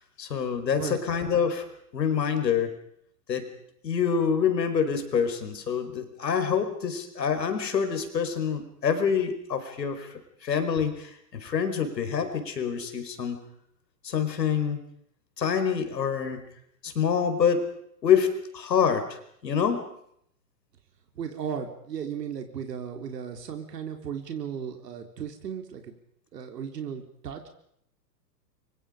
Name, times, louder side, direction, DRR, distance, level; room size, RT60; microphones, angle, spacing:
voice 1, 0.2-1.7 1.9-2.7 3.3-3.5 3.8-10.1 10.4-13.4 14.0-14.8 15.4-16.5 16.8-17.7 18.0-19.1 19.4-19.9, left 7 dB, 85° left, 8 dB, 5.0 m, -26 dB
voice 2, 21.2-25.9 26.3-27.5, right 7 dB, 75° right, 4 dB, 3.9 m, -35 dB
29.0 x 24.0 x 5.2 m, 0.70 s
hypercardioid pair, 140°, 48 cm